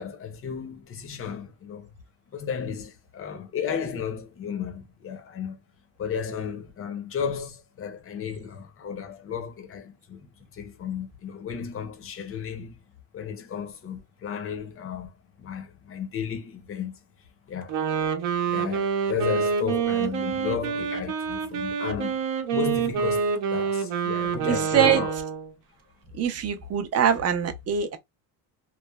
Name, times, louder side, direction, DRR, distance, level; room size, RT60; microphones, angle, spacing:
voice 1, 0.0-1.9 2.3-5.6 6.0-12.8 13.1-17.0 17.5-17.8 18.5-22.2 22.5-25.1, left 7 dB, 30° left, 0.5 m, -34 dB
Wind instrument woodwind instrument, 17.6-25.5, right 6 dB, 65° right, 0.7 m, -27 dB
voice 2, 24.5-25.0 26.1-28.0, right 8 dB, 35° right, 0.5 m, -23 dB
3.1 x 2.0 x 2.2 m
cardioid pair, 130°, 46 cm